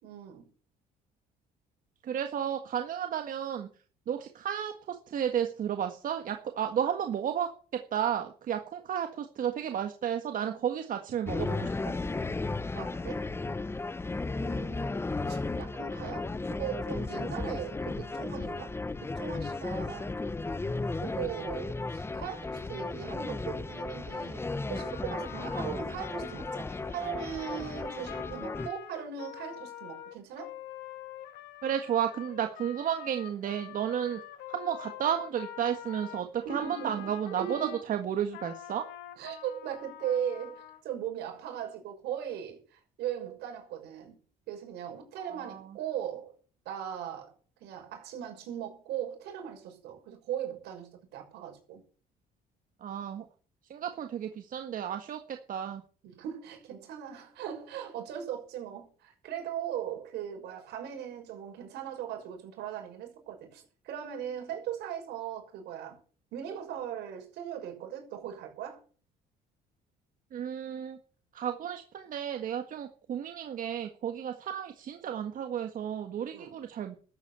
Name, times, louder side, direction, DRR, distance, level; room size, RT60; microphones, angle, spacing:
voice 1, 0.0-0.5 12.7-13.3 14.3-14.9 15.3-18.7 19.0-20.2 20.9-30.5 36.4-37.8 39.2-44.2 44.5-46.3 46.6-47.3 47.6-51.8 56.0-66.0 66.3-68.8 76.3-76.6, right 9 dB, 80° right, 6.2 m, -39 dB
voice 2, 2.0-3.7 4.1-7.5 7.9-11.9 31.6-34.2 34.5-38.8 45.2-45.6 52.8-53.3 53.7-55.2 55.5-55.8 70.3-71.0 71.3-77.0, right 9 dB, 55° right, 1.6 m, -32 dB
sound 1, 11.3-28.7, left 3 dB, 15° left, 0.8 m, -35 dB
Trumpet, 24.8-37.8 38.3-40.8, left 12 dB, 85° left, 2.3 m, -46 dB
13.5 x 8.5 x 8.3 m
cardioid pair, 110°, 17 cm